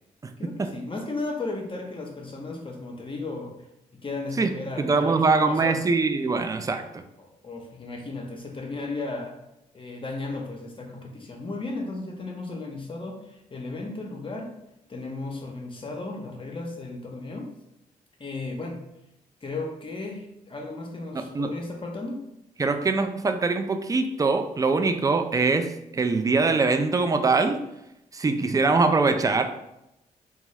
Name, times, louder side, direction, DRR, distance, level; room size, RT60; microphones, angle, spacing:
voice 1, 0.4-3.5 3.9-5.8 7.2-9.4 9.7-14.5 14.9-17.5 18.2-18.8 19.4-22.3, left 2 dB, 30° left, 1 dB, 0.6 m, -35 dB
voice 2, 4.8-7.0 21.1-21.5 22.6-27.6 28.1-29.5, right 3 dB, 20° right, 7 dB, 0.3 m, -23 dB
2.5 x 2.3 x 3.1 m, 0.85 s
supercardioid pair, 50°, 16 cm